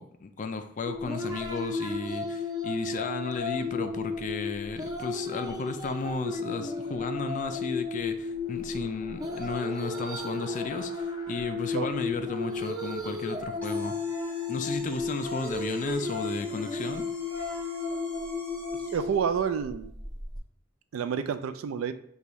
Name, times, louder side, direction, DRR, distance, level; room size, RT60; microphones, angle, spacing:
voice 1, 0.0-14.1 14.5-17.1, left 4 dB, 40° left, 8 dB, 0.4 m, -34 dB
sound 1, 0.9-20.4, left 3 dB, 20° right, 0.6 m, -34 dB
sound 2, 7.8-12.2, left 1 dB, 35° right, 1.3 m, -49 dB
sound 3, 13.6-19.2, equal, 10° left, 1.0 m, -47 dB
voice 2, 18.9-19.9 20.9-21.9, right 7 dB, 80° right, 10 dB, 0.3 m, -29 dB
6.7 x 2.3 x 3.0 m, 0.66 s
head